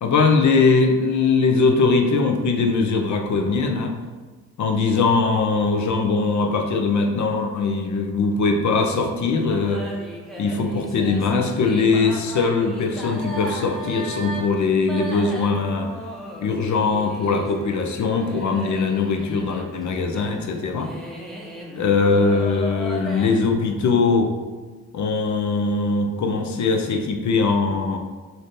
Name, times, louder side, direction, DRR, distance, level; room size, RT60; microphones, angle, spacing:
voice 1, 0.0-3.9 4.6-9.8 10.4-15.9 16.4-20.9 21.8-24.3 24.9-28.0, left 4 dB, 45° left, 4 dB, 0.5 m, -21 dB
sound 1, 9.5-23.5, right 1 dB, ahead, 0.7 m, -36 dB
2.6 x 2.5 x 3.6 m, 1.3 s
hypercardioid pair, 40°, 40 cm